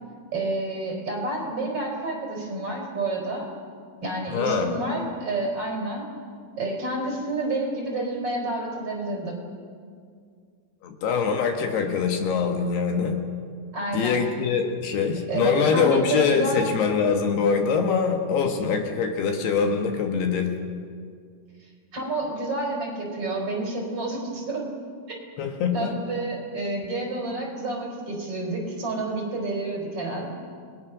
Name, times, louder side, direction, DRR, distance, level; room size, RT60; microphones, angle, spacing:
voice 1, 0.3-3.5 4.0-6.1 6.6-9.4 13.7-14.3 15.3-16.7 21.6-24.7 25.1-25.2 25.7-30.3, right 2 dB, 35° right, 0 dB, 4.9 m, -29 dB
voice 2, 4.3-4.8 10.8-13.2 13.9-20.6 25.4-26.0, left 5 dB, 70° left, 4 dB, 3.5 m, -23 dB
30.0 x 21.0 x 6.3 m, 2.1 s
omnidirectional pair, 5.1 m